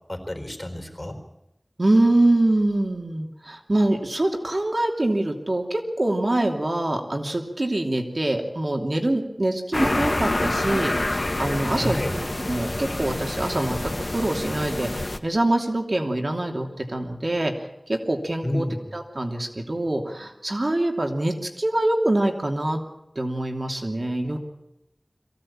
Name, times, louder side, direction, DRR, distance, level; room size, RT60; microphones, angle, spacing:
voice 1, 0.1-1.2 11.7-12.2 18.4-18.9, left 1 dB, 35° left, 5 dB, 4.3 m, -30 dB
voice 2, 1.8-13.8 14.1-17.5 17.9-18.6 18.9-22.8 23.1-24.4, right 1 dB, 65° right, 3 dB, 2.8 m, -24 dB
sound 1, 9.7-15.2, left 2 dB, 55° left, 1.5 m, -27 dB
23.0 x 16.5 x 8.8 m, 0.88 s
wide cardioid pair, 45°, 0 cm